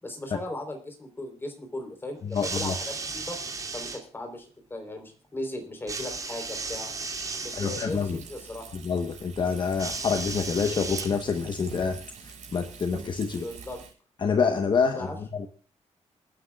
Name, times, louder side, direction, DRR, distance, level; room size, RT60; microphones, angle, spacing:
voice 1, 0.0-3.4 3.7-6.9 7.4-8.7 13.3-13.8 14.9-15.2, left 1 dB, 20° left, 4 dB, 3.7 m, -37 dB
voice 2, 2.2-2.7 7.5-8.2 8.7-13.4 14.2-15.5, left 5 dB, 40° left, 8 dB, 1.1 m, -27 dB
sound 1, 2.3-4.0 5.9-7.9 9.8-11.5 12.5-12.6, right 4 dB, 30° right, 2.6 m, -35 dB
Frying (food), 7.9-13.9, right 6 dB, 90° right, 6.6 m, -45 dB
28.5 x 9.8 x 2.3 m, 0.40 s
wide cardioid pair, 175°, 12 cm